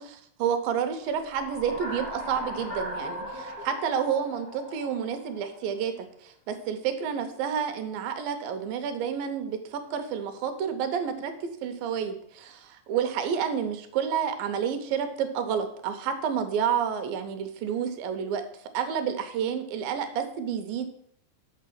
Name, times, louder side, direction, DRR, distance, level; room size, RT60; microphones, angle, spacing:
voice 1, 0.0-18.4 18.7-20.9, right 7 dB, 80° right, 8 dB, 2.6 m, -30 dB
sound 1, 1.0-5.7, equal, 20° left, 2.0 m, -38 dB
6.5 x 6.3 x 7.5 m, 0.70 s
omnidirectional pair, 4.2 m